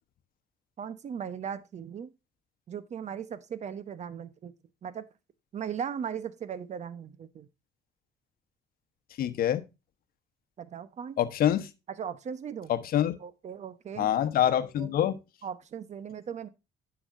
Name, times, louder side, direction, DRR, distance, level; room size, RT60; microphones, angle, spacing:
voice 1, 0.8-2.1 2.7-4.5 4.8-5.0 5.5-7.5 10.6-11.2 11.9-12.7 13.2-14.1 14.8-15.1 15.4-16.5, right 7 dB, 45° right, 1.0 m, -38 dB
voice 2, 9.2-9.6 11.2-11.7 12.7-13.2 14.0-15.2, left 11 dB, 60° left, 1.1 m, -25 dB
9.9 x 7.1 x 2.6 m
cardioid pair, 110°, 17 cm